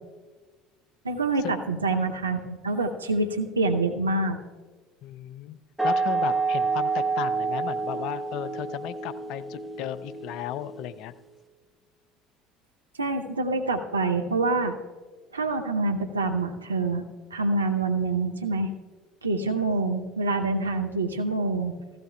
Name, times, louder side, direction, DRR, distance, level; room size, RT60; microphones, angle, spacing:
voice 1, 1.0-4.4 13.0-14.8 15.3-17.0 17.3-18.7 19.2-21.8, right 3 dB, 85° right, 5 dB, 0.8 m, -26 dB
voice 2, 5.0-5.6 5.8-11.1, left 12 dB, 60° left, 14 dB, 0.5 m, -35 dB
sound 1, 5.8-11.2, right 4 dB, ahead, 0.7 m, -29 dB
16.0 x 15.5 x 2.3 m, 1.4 s
figure-of-eight pair, 60°, 0 cm